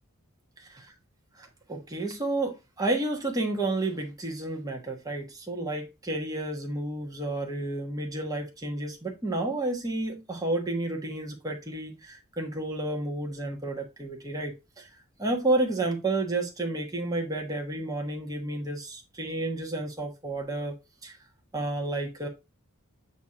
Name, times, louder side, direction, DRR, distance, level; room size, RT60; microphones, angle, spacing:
voice 1, 1.3-14.9 15.2-20.7 21.0-21.2 21.5-22.3, right 2 dB, 15° right, 1.3 m, -31 dB
8.1 x 2.9 x 4.9 m
head